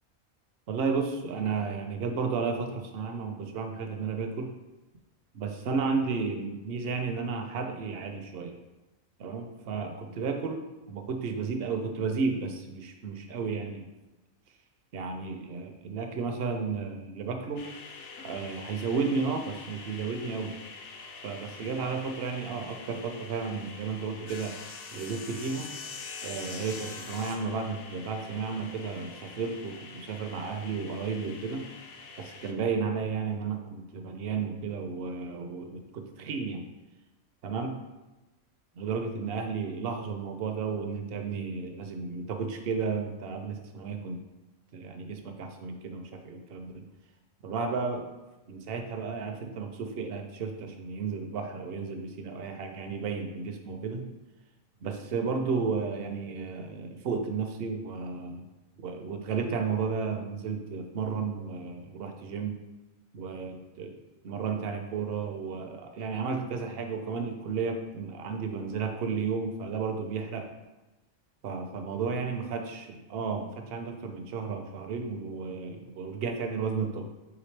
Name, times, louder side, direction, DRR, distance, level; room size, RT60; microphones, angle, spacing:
voice 1, 0.7-4.5 5.3-8.6 9.2-13.9 14.9-17.7 18.2-20.5 21.2-24.5 24.9-25.7 26.2-31.6 32.2-36.6 37.4-37.7 38.7-44.2 44.7-46.9 47.4-48.0 48.5-54.1 54.8-58.5 58.8-62.6 63.1-63.9 64.2-70.5 71.4-77.0, right 5 dB, 60° right, 5 dB, 0.7 m, -33 dB
sound 1, 17.6-32.5, left 4 dB, 65° left, 0.6 m, -45 dB
4.9 x 3.3 x 3.2 m, 1.1 s
omnidirectional pair, 1.4 m